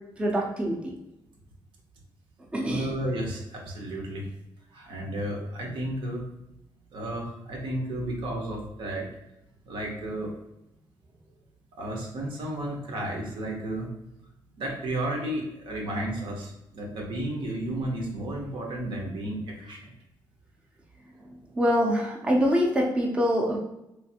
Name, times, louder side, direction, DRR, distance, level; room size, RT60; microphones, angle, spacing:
voice 1, 0.2-0.9 2.5-2.9 21.6-23.6, equal, 15° right, -1 dB, 0.4 m, -24 dB
voice 2, 2.6-4.3 4.7-6.3 6.9-9.1 9.7-10.3 11.7-13.9 14.6-19.9, right 1 dB, 80° right, 0 dB, 0.8 m, -33 dB
3.2 x 2.5 x 2.7 m, 0.89 s
wide cardioid pair, 165°, 9 cm